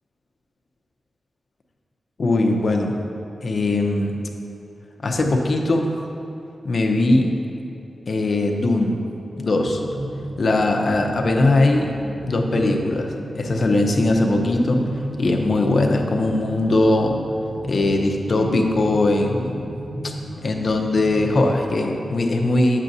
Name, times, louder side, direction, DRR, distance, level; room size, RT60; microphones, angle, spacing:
voice 1, 2.2-2.9 3.4-4.2 5.0-6.0 6.6-7.3 8.1-9.0 9.4-9.8 10.4-11.9 12.2-13.1 13.3-14.8 15.2-17.1 17.6-19.7 20.0-20.1 20.4-22.8, left 2 dB, 50° left, 2 dB, 0.7 m, -20 dB
sound 1, 9.5-21.8, right 1 dB, 75° right, 1.5 m, -34 dB
9.2 x 7.4 x 2.7 m, 2.8 s
wide cardioid pair, 135°, 0 cm